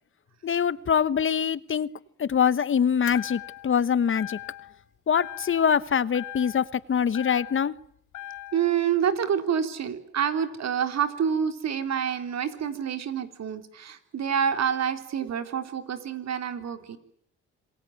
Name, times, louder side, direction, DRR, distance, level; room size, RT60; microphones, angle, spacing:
voice 1, 0.4-1.9 2.2-4.4 5.1-7.7, left 7 dB, 40° left, 18 dB, 1.0 m, -24 dB
sound 1, 3.1-3.8 4.1-4.8 5.1-5.8 6.1-7.8 8.1-8.8, left 14 dB, 75° left, 2.7 m, -40 dB
voice 2, 8.5-17.0, right 8 dB, 60° right, 8 dB, 3.6 m, -27 dB
27.0 x 21.0 x 9.4 m, 0.66 s
cardioid pair, 90°, 30 cm